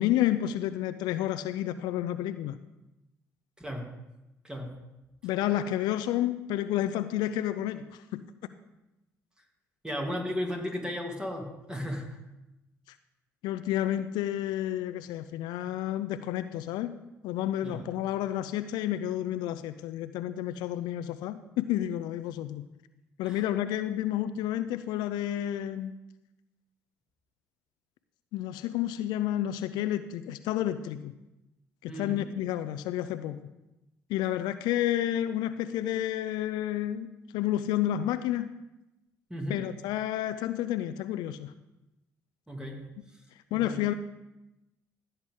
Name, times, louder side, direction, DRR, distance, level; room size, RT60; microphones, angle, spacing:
voice 1, 0.0-2.6 5.2-8.2 13.4-16.9 17.2-22.6 23.2-25.9 28.3-31.1 31.8-33.4 34.1-38.5 39.5-41.5 43.5-43.9, left 12 dB, 70° left, 12 dB, 0.5 m, -30 dB
voice 2, 3.6-4.0 4.4-4.7 9.8-12.2 17.6-17.8 23.2-23.4 31.9-32.3 39.3-39.7 42.5-42.9 43.5-43.8, left 1 dB, 10° right, 2 dB, 2.5 m, -35 dB
15.5 x 7.9 x 3.7 m, 0.96 s
hypercardioid pair, 55°, 8 cm